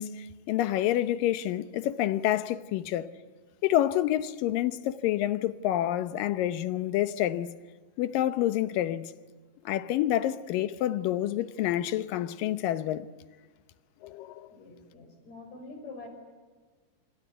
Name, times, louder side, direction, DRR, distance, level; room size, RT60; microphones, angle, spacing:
voice 1, 0.0-3.1 3.6-7.5 8.0-9.1 9.7-13.1 14.0-14.5, left 13 dB, 75° left, 2.4 m, -28 dB
voice 2, 14.5-16.1, left 3 dB, 45° left, 6.8 m, -45 dB
26.0 x 26.0 x 8.1 m
omnidirectional pair, 4.3 m